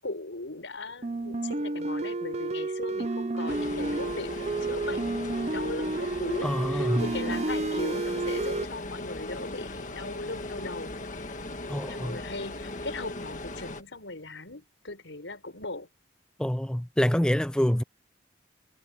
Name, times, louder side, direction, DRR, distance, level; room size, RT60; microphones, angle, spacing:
voice 1, 0.0-5.0 5.5-11.3 11.9-15.9, left 2 dB, 90° left, 5.5 m, -39 dB
sound 1, 1.0-8.7, right 2 dB, 35° right, 0.8 m, -31 dB
sound 2, 3.5-13.8, left 2 dB, 40° left, 1.7 m, -38 dB
voice 2, 6.4-7.0 11.7-12.2 16.4-17.8, equal, 5° left, 0.4 m, -26 dB
head